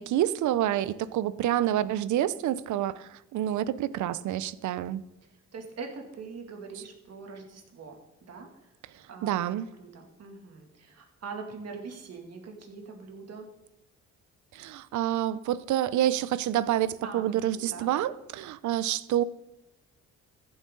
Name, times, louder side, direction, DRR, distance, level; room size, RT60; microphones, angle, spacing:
voice 1, 0.0-5.0 9.2-9.7 14.5-19.2, right 12 dB, 75° right, 0.6 m, -28 dB
voice 2, 5.2-8.7 9.1-13.5 17.0-17.9, right 4 dB, 55° right, 2.5 m, -43 dB
15.0 x 7.9 x 3.9 m
cardioid pair, 90°, 30 cm